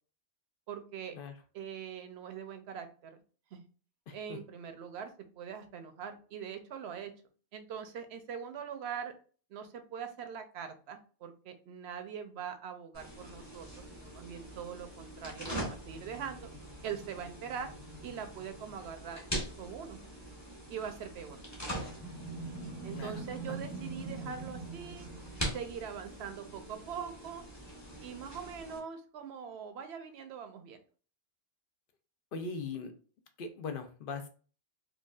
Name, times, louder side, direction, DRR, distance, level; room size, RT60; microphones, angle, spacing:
voice 1, 0.7-1.2 1.5-3.2 3.5-3.6 4.1-5.1 5.4-7.1 7.5-9.1 9.5-16.5 16.8-17.7 18.0-19.2 19.6-20.0 20.7-21.4 22.8-25.1 25.5-27.4 28.0-30.8, right 7 dB, 75° right, 8 dB, 0.8 m, -42 dB
voice 2, 4.1-4.4 22.9-23.2 23.5-23.6 32.3-32.9 33.4-34.3, left 4 dB, 60° left, 7 dB, 0.7 m, -40 dB
sound 1, 12.9-28.8, right 1 dB, 15° left, 1.0 m, -42 dB
4.7 x 2.3 x 2.4 m, 0.40 s
omnidirectional pair, 1.1 m